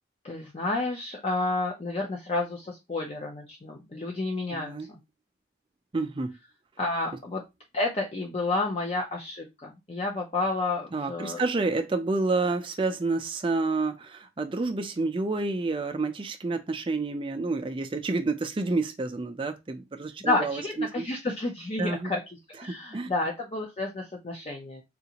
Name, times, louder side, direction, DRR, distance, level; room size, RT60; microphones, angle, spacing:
voice 1, 0.2-4.7 6.8-7.4 7.7-11.4 20.2-22.2 22.6-24.8, left 2 dB, 35° left, 0.5 m, -30 dB
voice 2, 4.5-4.9 5.9-6.3 10.9-21.1 21.8-22.1 22.7-23.1, right 3 dB, 30° right, 0.4 m, -29 dB
3.7 x 2.5 x 2.8 m
head